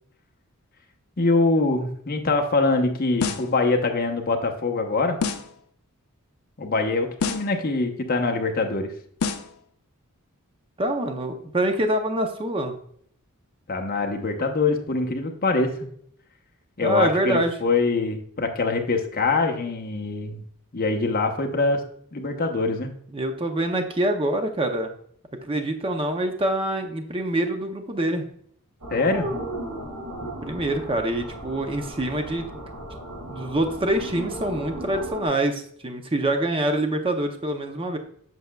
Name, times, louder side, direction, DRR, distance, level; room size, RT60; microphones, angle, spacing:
voice 1, 1.2-5.2 6.6-8.9 13.7-15.9 16.8-20.4 20.7-21.8 22.1-22.9 28.9-29.3, left 3 dB, 40° left, 3 dB, 0.9 m, -24 dB
sound 1, 3.2-3.6 5.2-5.6 7.2-7.6 9.2-9.6, left 5 dB, 85° left, 0.6 m, -27 dB
voice 2, 10.8-12.7 16.8-17.5 23.1-24.9 25.4-28.3 30.2-32.4 33.3-38.0, right 1 dB, 25° right, 5 dB, 0.6 m, -25 dB
sound 2, 28.8-35.3, right 1 dB, 85° right, 2.7 m, -35 dB
7.9 x 6.3 x 2.3 m, 0.63 s
head